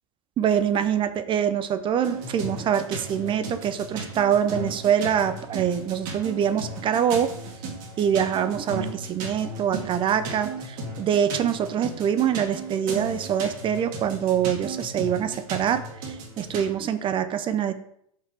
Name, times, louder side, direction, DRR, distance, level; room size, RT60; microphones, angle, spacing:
voice 1, 0.4-7.3 8.0-17.7, right 8 dB, 25° right, 11 dB, 0.6 m, -24 dB
sound 1, 2.0-16.7, right 2 dB, 45° right, 2.0 m, -36 dB
5.8 x 5.7 x 4.5 m, 0.70 s
hypercardioid pair, 100°, 19 cm